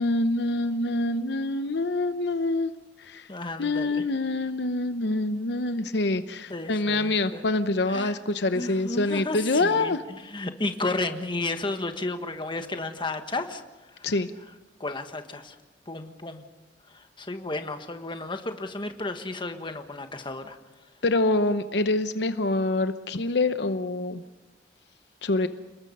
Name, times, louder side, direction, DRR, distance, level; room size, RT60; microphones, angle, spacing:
voice 1, 0.0-2.7 3.0-3.3 3.6-10.0 14.0-14.3 21.0-24.2 25.2-25.5, left 2 dB, 70° left, 10 dB, 0.9 m, -26 dB
voice 2, 3.3-4.1 6.5-7.4 7.9-8.2 8.5-14.2 14.8-15.6 15.8-16.4 16.8-20.6, left 2 dB, 30° left, 7 dB, 1.6 m, -33 dB
30.0 x 20.5 x 5.5 m, 1.1 s
head